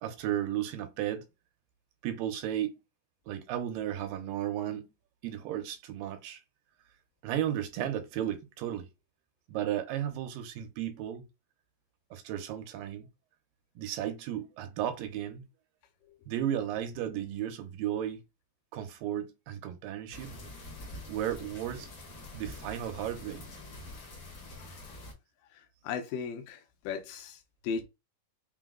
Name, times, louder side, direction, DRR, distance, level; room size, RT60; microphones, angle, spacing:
voice 1, 0.0-1.3 2.0-2.8 3.3-4.9 5.2-6.4 7.2-8.9 9.5-11.3 12.1-13.1 13.8-15.4 16.3-18.2 18.7-20.3 21.1-21.9 22.3-23.4, right 11 dB, 85° right, 2.4 m, -34 dB
sound 1, 20.1-25.1, left 2 dB, 60° left, 1.2 m, -45 dB
voice 2, 24.6-25.0 25.5-27.8, left 6 dB, 80° left, 2.4 m, -38 dB
5.7 x 2.0 x 3.7 m
omnidirectional pair, 4.0 m